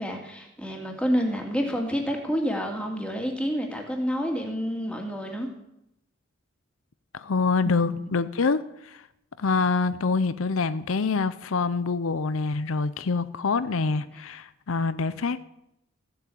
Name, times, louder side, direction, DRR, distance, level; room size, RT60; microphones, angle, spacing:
voice 1, 0.0-5.5 7.6-7.8, equal, 5° left, 2 dB, 2.2 m, -28 dB
voice 2, 7.1-9.0 9.4-15.4, left 4 dB, 75° left, 14 dB, 0.6 m, -26 dB
15.0 x 8.0 x 8.5 m, 0.84 s
head